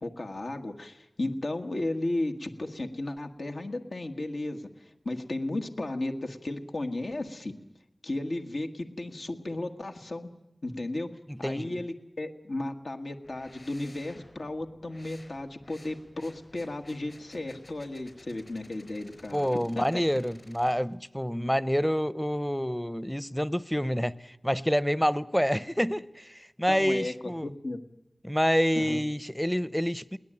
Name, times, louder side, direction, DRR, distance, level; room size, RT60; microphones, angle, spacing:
voice 1, 0.0-4.7 5.1-7.5 8.0-10.3 10.6-11.1 11.4-20.0 26.7-27.1 27.4-27.8 28.8-29.0, left 2 dB, 80° left, 1.6 m, -34 dB
voice 2, 11.3-11.8 19.3-27.5 28.2-30.2, equal, 5° left, 0.7 m, -28 dB
sound 1, 13.2-20.7, left 2 dB, 50° left, 4.9 m, -55 dB
21.5 x 18.0 x 8.8 m
wide cardioid pair, 55°, 0 cm